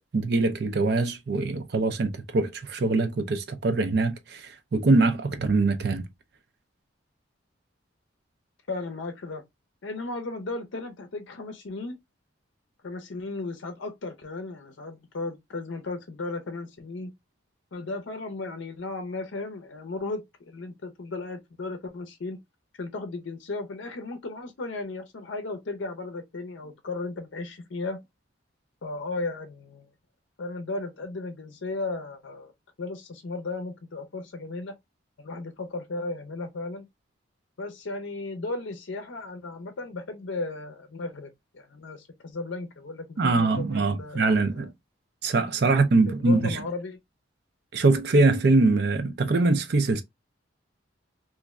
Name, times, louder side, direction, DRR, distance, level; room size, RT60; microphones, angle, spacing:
voice 1, 0.1-6.1 43.2-44.7 45.2-46.6 47.7-50.0, right 3 dB, 55° right, 0.4 m, -23 dB
voice 2, 8.7-9.4 9.8-12.0 12.8-17.1 17.7-22.4 22.8-28.0 28.8-29.9 30.4-32.5 32.8-34.7 35.2-36.8 37.6-44.7 45.6-47.0, left 3 dB, 70° left, 0.5 m, -35 dB
3.0 x 2.5 x 2.3 m
head